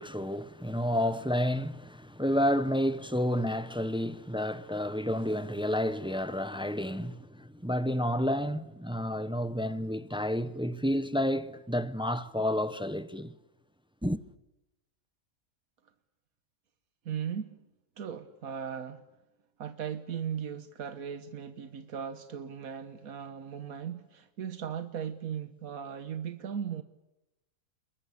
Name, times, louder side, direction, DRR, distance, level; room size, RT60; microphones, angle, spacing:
voice 1, 0.0-13.3 14.0-14.2, equal, 5° right, 0.7 m, -30 dB
voice 2, 17.0-17.5 18.0-19.0 19.6-26.8, right 8 dB, 90° right, 1.6 m, -37 dB
29.0 x 22.0 x 8.4 m
omnidirectional pair, 1.5 m